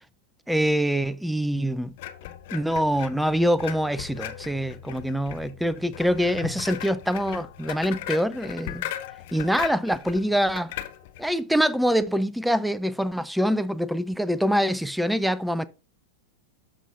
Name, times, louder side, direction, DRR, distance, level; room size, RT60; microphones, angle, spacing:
voice 1, 0.5-1.9 2.5-8.9 9.3-10.7 11.2-15.6, equal, ahead, 0.4 m, -25 dB
sound 1, 2.0-11.3, left 12 dB, 50° left, 0.7 m, -38 dB
12.0 x 5.4 x 2.4 m
figure-of-eight pair, 90°, 0 cm